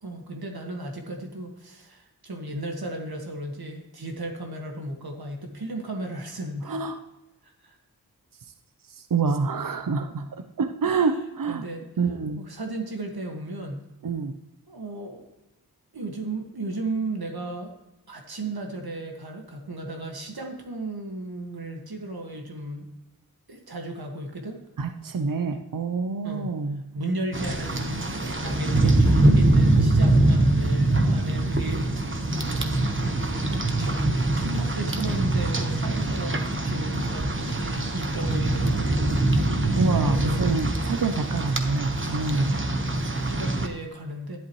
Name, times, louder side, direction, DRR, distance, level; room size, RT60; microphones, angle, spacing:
voice 1, 0.0-6.8 7.4-7.8 10.8-11.2 11.5-11.8 12.4-13.9 14.7-15.3 15.9-17.7 18.1-22.9 23.5-24.6 26.2-26.5 26.9-31.9 32.1-33.3 33.6-34.0 34.4-39.0 40.0-40.5 42.8-44.4, right 2 dB, 80° right, 2 dB, 1.9 m, -35 dB
voice 2, 6.7-7.0 9.0-11.6 12.0-12.4 14.0-14.4 24.8-26.8 39.8-42.5, right 4 dB, 60° right, 7 dB, 0.8 m, -27 dB
Rain, 27.3-43.7, right 2 dB, 35° right, 1.2 m, -23 dB
11.0 x 11.0 x 3.1 m, 0.96 s
wide cardioid pair, 65°, 37 cm